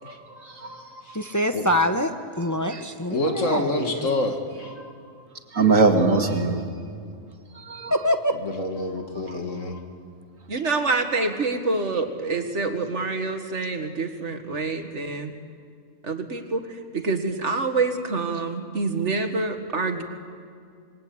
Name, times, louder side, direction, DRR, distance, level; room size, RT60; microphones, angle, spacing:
voice 1, 0.3-0.8 5.5-6.6 7.6-8.1, right 4 dB, 85° right, 4 dB, 2.5 m, -21 dB
voice 2, 1.1-4.1 7.9-8.3, equal, 15° left, 6 dB, 1.0 m, -25 dB
voice 3, 3.1-4.7 8.4-9.7, left 2 dB, 70° left, 4 dB, 2.8 m, -27 dB
voice 4, 10.5-15.3 16.0-20.0, right 3 dB, 60° right, 7 dB, 2.1 m, -26 dB
26.5 x 22.0 x 8.7 m, 2.2 s
omnidirectional pair, 1.4 m